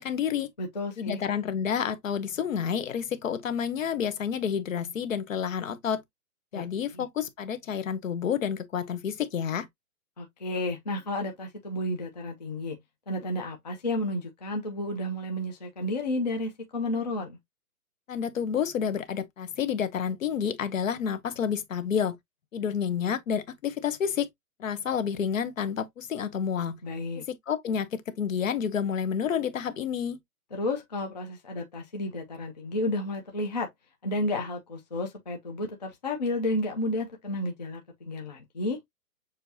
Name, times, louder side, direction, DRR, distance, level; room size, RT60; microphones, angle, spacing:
voice 1, 0.0-0.5 1.0-6.0 6.5-9.7 18.1-22.2 22.5-24.3 24.6-26.8 27.2-30.2, left 7 dB, 60° left, 0.9 m, -29 dB
voice 2, 0.6-1.2 6.5-6.6 6.9-7.0 10.2-12.8 13.1-17.4 26.8-27.2 30.5-33.7 34.0-38.8, left 1 dB, 30° left, 0.5 m, -32 dB
6.7 x 2.7 x 2.6 m
hypercardioid pair, 175°, 44 cm